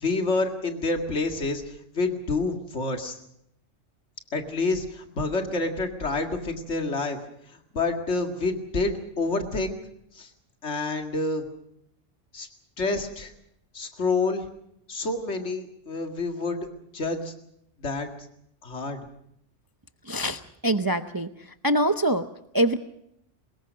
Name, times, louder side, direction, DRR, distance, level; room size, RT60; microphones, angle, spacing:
voice 1, 0.0-3.2 4.3-7.2 7.5-9.8 10.1-10.3 10.6-11.4 12.3-12.5 12.8-13.3 13.7-14.5 14.9-16.6 16.9-17.3 17.8-18.1 18.6-19.0, left 3 dB, 70° left, 4 dB, 2.4 m, -28 dB
voice 2, 20.1-21.3 21.6-22.3 22.5-22.8, right 1 dB, 20° right, 8 dB, 0.7 m, -24 dB
23.0 x 21.0 x 6.4 m, 0.76 s
omnidirectional pair, 1.2 m